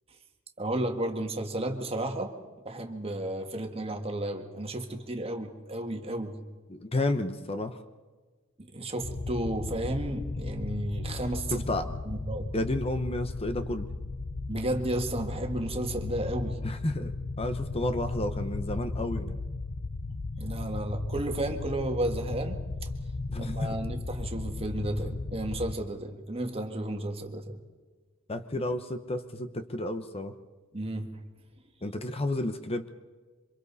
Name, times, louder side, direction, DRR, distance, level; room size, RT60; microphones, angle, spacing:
voice 1, 0.6-2.3 2.6-6.4 8.6-11.6 12.1-12.5 14.5-16.6 20.4-22.6 23.4-27.6 30.7-31.1, right 1 dB, 30° right, 4 dB, 1.9 m, -33 dB
voice 2, 6.7-7.8 11.5-11.9 12.5-13.9 16.6-17.1 17.4-19.4 23.3-23.8 28.3-30.3 31.8-32.9, left 1 dB, 30° left, 9 dB, 1.0 m, -31 dB
sound 1, 9.0-25.8, left 3 dB, 85° left, 0.9 m, -36 dB
28.0 x 25.0 x 4.2 m, 1.4 s
head